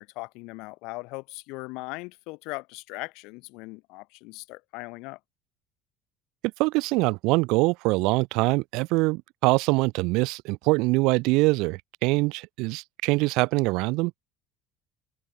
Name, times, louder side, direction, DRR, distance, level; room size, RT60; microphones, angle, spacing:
voice 1, 0.0-5.2, left 26 dB, 75° left, 3.1 m, -39 dB
voice 2, 6.6-14.1, right 24 dB, 75° right, 0.5 m, -24 dB
open air
cardioid pair, 140°, 0 cm